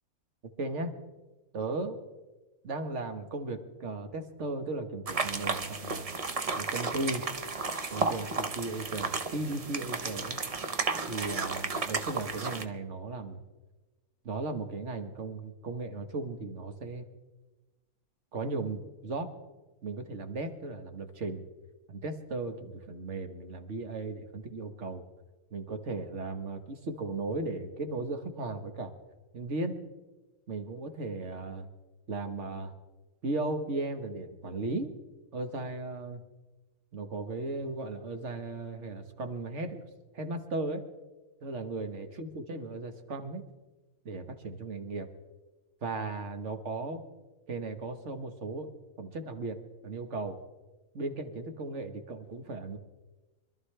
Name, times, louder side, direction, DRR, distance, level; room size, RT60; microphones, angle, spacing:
voice 1, 0.6-1.0 1.5-2.0 2.6-6.1 6.5-7.3 7.9-10.4 11.1-13.4 14.2-17.1 18.3-19.3 19.8-21.4 21.9-25.0 25.5-28.9 29.3-29.8 30.5-31.7 32.1-32.7 33.2-34.9 35.3-36.2 36.9-39.8 40.1-40.8 41.4-43.4 44.0-45.1 45.8-47.0 47.5-48.7 49.0-50.4 50.9-52.8, right 2 dB, 50° right, 6 dB, 1.6 m, -36 dB
sound 1, 5.1-12.6, right 4 dB, 35° right, 0.6 m, -33 dB
25.5 x 13.0 x 3.3 m, 1.1 s
omnidirectional pair, 1.6 m